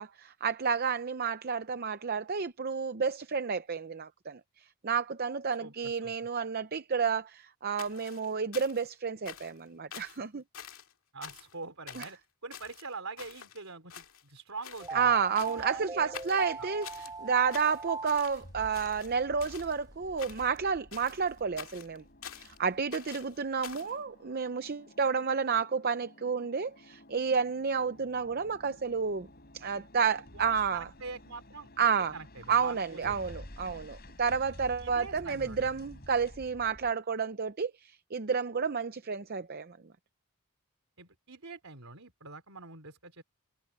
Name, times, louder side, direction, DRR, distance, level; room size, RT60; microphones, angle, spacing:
voice 1, 0.0-10.4 12.0-12.1 14.9-22.0 22.3-29.3 29.5-30.9 31.8-32.1 32.5-39.8, right 6 dB, 45° right, 0.6 m, -31 dB
voice 2, 5.6-6.1 11.1-15.2 15.5-16.1 16.6-16.7 30.3-33.3 34.8-35.7 41.0-43.2, right 3 dB, 70° right, 3.8 m, -45 dB
sound 1, 7.8-8.9 9.3-9.6 9.9-10.2 10.5-10.9 11.2-11.6 11.9-12.2 12.5-13.6 13.9-14.4 14.6-14.9 15.4-15.7 16.1-17.1 17.5-18.4 18.7-19.8 20.2-20.6 20.9-22.6 22.9-23.9, left 8 dB, 65° left, 2.3 m, -47 dB
sound 2, 14.8-19.0 19.4-19.5 19.8-20.2, right 3 dB, 20° right, 2.7 m, -40 dB
sound 3, 18.4-36.9, left 1 dB, 45° left, 4.5 m, -52 dB
head